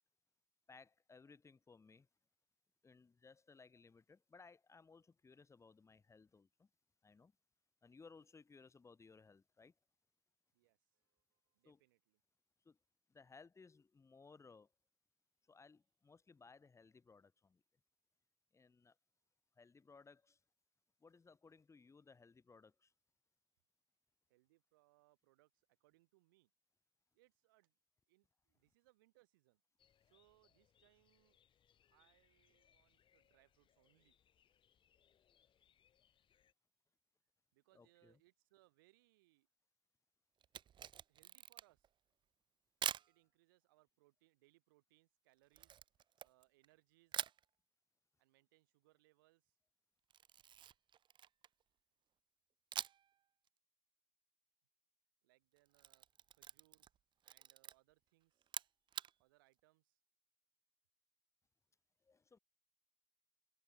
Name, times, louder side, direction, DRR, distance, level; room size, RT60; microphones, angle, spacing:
voice 1, 0.7-2.1 2.8-6.7 7.0-7.3 7.8-9.7 11.6-11.8 12.6-12.8 13.1-14.7 15.5-17.6 18.5-19.0 19.6-20.4 21.0-22.9 37.7-38.2 62.0-62.4, left 4 dB, 25° left, 5.5 m, -62 dB
voice 2, 10.5-12.2 24.3-26.5 27.1-27.8 28.1-29.6 30.0-31.4 31.9-34.1 37.5-39.5 41.1-41.9 43.1-45.7 46.2-47.2 48.2-49.6 55.2-56.1 56.3-56.9 57.2-58.6 59.2-60.0, right 20 dB, 85° right, 7.5 m, -74 dB
sound 1, 29.8-36.5, left 9 dB, 50° left, 7.9 m, -76 dB
Camera, 40.4-41.9 42.8-43.1 45.6-46.7 47.1-47.4 50.1-51.6 52.7-53.2 53.5-53.6 55.6-57.0 57.2-57.7 58.4-59.1, right 9 dB, 45° right, 0.9 m, -45 dB
hypercardioid pair, 75°, 11 cm